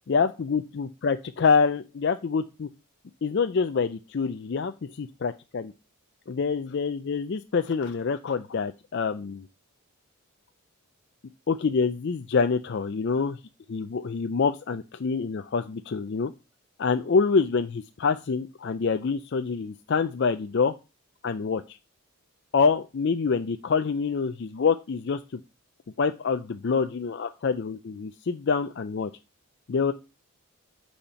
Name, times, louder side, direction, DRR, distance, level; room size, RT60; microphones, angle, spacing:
voice 1, 0.1-2.7 3.2-5.7 6.3-9.5 11.5-13.4 13.7-16.3 16.8-20.7 21.2-21.8 22.5-25.4 26.0-29.1 29.7-29.9, left 5 dB, 50° left, 8 dB, 0.4 m, -26 dB
8.6 x 4.3 x 5.5 m, 0.29 s
head